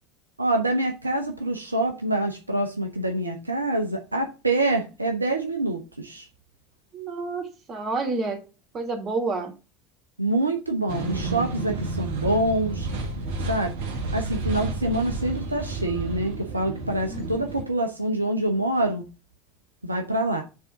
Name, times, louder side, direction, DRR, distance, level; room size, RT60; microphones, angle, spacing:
voice 1, 0.4-6.3 10.2-12.9 13.5-13.7 14.1-19.0 19.8-20.4, right 1 dB, 85° right, 4 dB, 0.8 m, -26 dB
voice 2, 6.9-8.4 8.7-9.6 17.1-17.5, right 3 dB, 35° right, 4 dB, 2.6 m, -30 dB
sound 1, 10.9-17.6, right 2 dB, 65° right, 1.6 m, -31 dB
7.0 x 3.7 x 5.8 m, 0.31 s
figure-of-eight pair, 70°, 0 cm